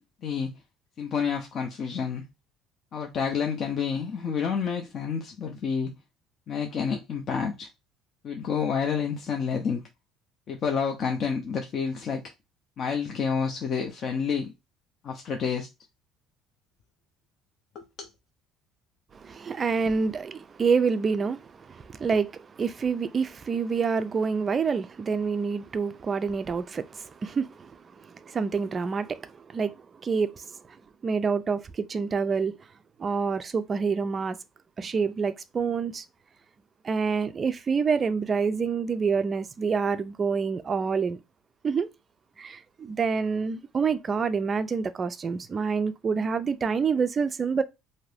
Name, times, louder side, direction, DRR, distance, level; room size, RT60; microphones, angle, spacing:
voice 1, 1.0-2.2 2.9-5.9 6.5-7.7 8.2-9.8 10.5-12.2 12.8-14.5 15.0-15.7 17.7-18.1, left 6 dB, 40° left, 0.5 m, -29 dB
voice 2, 19.2-30.8 31.0-32.6 33.0-34.4 34.8-36.0 36.8-41.2 41.6-41.9 42.4-47.6, right 5 dB, 25° right, 0.3 m, -27 dB
2.6 x 2.5 x 3.3 m
cardioid pair, 145°, 0 cm